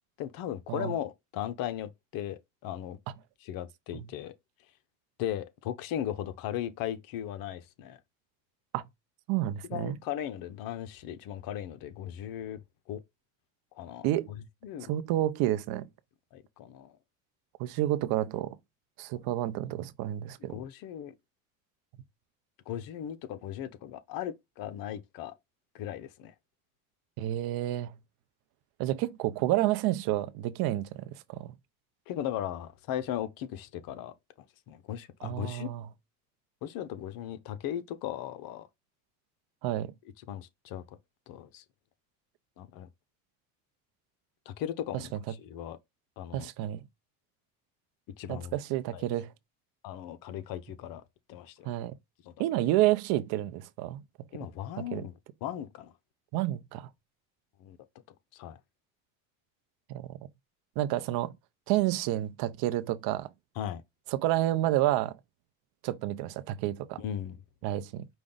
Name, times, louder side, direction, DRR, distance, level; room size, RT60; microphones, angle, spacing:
voice 1, 0.2-3.0 3.4-4.3 5.2-8.0 9.7-12.6 12.9-13.0 13.8-14.4 14.6-14.9 16.3-16.9 20.5-21.1 22.7-25.3 25.7-26.3 32.1-34.1 34.7-35.7 36.6-38.7 40.3-40.8 41.3-41.6 42.6-42.9 44.5-45.8 46.2-46.5 48.2-48.5 48.9-49.0 49.8-51.0 51.3-51.7 52.2-52.4 54.3-55.1 55.4-55.9 57.6-57.8 58.3-58.6 63.6-63.8 67.0-67.4, left 11 dB, 55° left, 0.7 m, -37 dB
voice 2, 9.3-10.0 14.0-14.3 14.9-15.9 17.6-18.6 19.0-20.6 27.2-28.0 28.8-31.5 35.2-35.8 39.6-39.9 44.9-45.0 46.3-46.8 48.3-49.3 51.6-51.9 52.4-54.0 54.8-55.0 56.3-56.9 59.9-60.2 60.8-61.3 61.7-63.3 64.1-65.2 65.8-67.0 67.6-68.0, right 14 dB, 60° right, 0.7 m, -29 dB
5.1 x 2.3 x 3.8 m
supercardioid pair, 110°, 42 cm